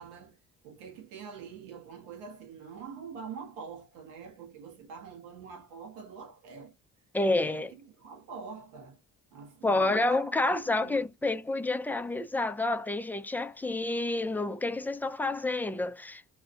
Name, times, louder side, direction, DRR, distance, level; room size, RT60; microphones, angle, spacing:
voice 1, 0.0-6.7 7.4-9.0 9.3-10.2 10.5-11.1, right 6 dB, 80° right, 1.2 m, -45 dB
voice 2, 7.1-7.7 9.6-16.3, left 2 dB, 5° left, 0.3 m, -29 dB
2.7 x 2.4 x 2.3 m
hypercardioid pair, 60°, 37 cm